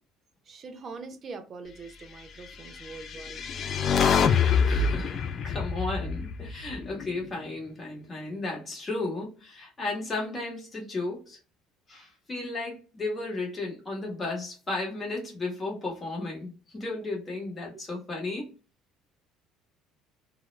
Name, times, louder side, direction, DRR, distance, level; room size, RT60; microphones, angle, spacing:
voice 1, 0.5-3.4, right 4 dB, 40° right, 0.5 m, -43 dB
sound 1, 2.9-7.2, left 6 dB, 50° left, 0.3 m, -26 dB
voice 2, 4.7-11.4 11.9-18.5, left 2 dB, 25° left, 1.0 m, -34 dB
2.1 x 2.0 x 3.1 m
supercardioid pair, 90°, 0 cm